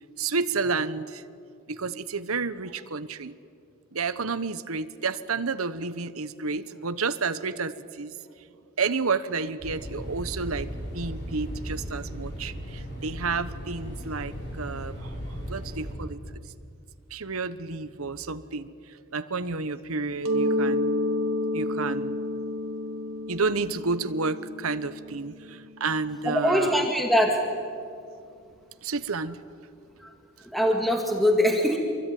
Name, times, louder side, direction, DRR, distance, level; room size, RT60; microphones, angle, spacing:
voice 1, 0.2-1.2 1.7-3.3 3.9-8.2 8.8-10.7 10.9-15.2 15.5-16.2 17.1-18.7 19.1-21.0 21.5-22.2 23.3-26.9 28.8-29.4, right 4 dB, 90° right, 13 dB, 1.1 m, -30 dB
sound 1, 9.6-15.9, equal, 55° left, 7.4 m, -36 dB
Mallet percussion, 20.2-25.8, left 1 dB, 70° right, 2.1 m, -29 dB
voice 2, 26.2-27.5 30.0-30.1 30.5-31.8, equal, ahead, 2 dB, 2.1 m, -22 dB
27.5 x 23.0 x 9.4 m, 2.4 s
head